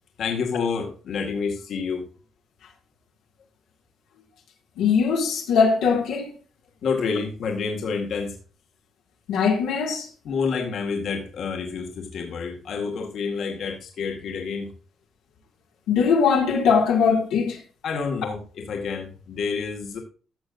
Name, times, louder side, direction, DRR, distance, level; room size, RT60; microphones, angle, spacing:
voice 1, 0.2-2.1 6.8-8.4 10.2-14.7 17.8-20.0, left 5 dB, 65° left, 2.0 m, -28 dB
voice 2, 4.8-6.3 9.3-10.1 15.9-17.6, left 6 dB, 90° left, 2.3 m, -20 dB
14.5 x 6.4 x 2.7 m
cardioid pair, 90°, 0 cm